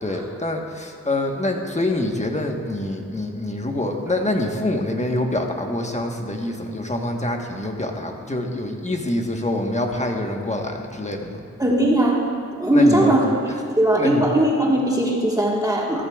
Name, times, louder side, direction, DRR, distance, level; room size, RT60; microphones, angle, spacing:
voice 1, 0.0-11.4 12.7-13.2 14.0-14.3, left 1 dB, 25° left, 2 dB, 1.3 m, -25 dB
voice 2, 11.6-12.2 12.5-13.2 13.7-16.1, right 1 dB, 10° right, -3 dB, 1.5 m, -19 dB
15.0 x 13.5 x 2.4 m, 2.4 s
cardioid pair, 70°, 30 cm